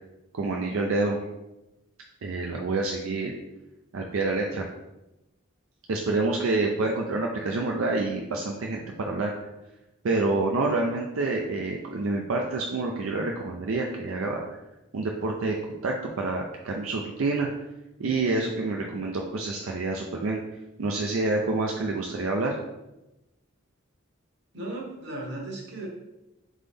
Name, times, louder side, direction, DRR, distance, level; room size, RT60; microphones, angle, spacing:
voice 1, 0.3-1.2 2.2-3.3 3.9-4.7 5.9-9.3 10.0-14.6 14.9-15.6 15.8-17.5 18.0-20.4 20.8-22.6, right 3 dB, 85° right, 0 dB, 0.5 m, -27 dB
voice 2, 24.5-25.9, right 2 dB, 60° right, -1 dB, 1.1 m, -36 dB
3.8 x 3.6 x 3.5 m, 0.97 s
head